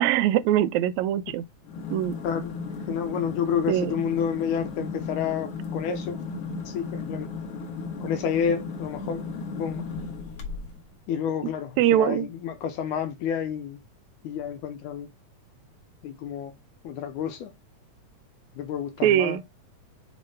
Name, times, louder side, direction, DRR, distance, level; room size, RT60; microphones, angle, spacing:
voice 1, 0.0-1.4 1.9-2.2 3.7-3.9 11.8-12.3 19.0-19.4, right 12 dB, 80° right, 1.7 m, -22 dB
sound 1, 1.6-10.9, left 4 dB, 55° left, 2.1 m, -35 dB
voice 2, 2.2-6.2 6.7-7.3 8.0-9.3 9.5-9.9 11.1-13.8 14.2-15.1 16.0-16.5 16.8-17.5 18.6-19.4, left 8 dB, 80° left, 2.2 m, -30 dB
7.1 x 3.1 x 5.4 m
omnidirectional pair, 3.6 m